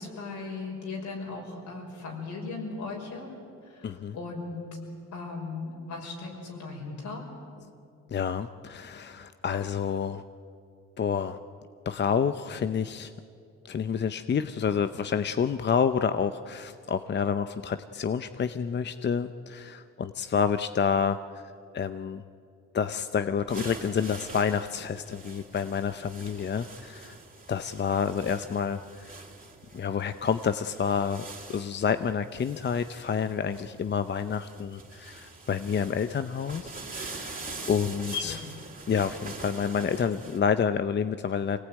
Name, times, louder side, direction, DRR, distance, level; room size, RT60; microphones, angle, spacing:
voice 1, 0.0-3.3 3.6-4.6 5.1-7.2 38.1-38.5, left 4 dB, 75° left, 0 dB, 6.1 m, -37 dB
voice 2, 3.8-4.2 8.1-10.2 11.0-11.4 11.9-13.1 13.6-21.4 21.7-22.2 22.7-27.1 27.5-29.1 29.7-31.2 31.5-37.4 37.7-38.4 38.9-41.6, left 7 dB, 35° left, 11 dB, 0.7 m, -29 dB
sound 1, 23.5-40.4, right 3 dB, 25° right, 3.9 m, -44 dB
24.5 x 18.5 x 9.3 m, 2.4 s
cardioid pair, 90°, 30 cm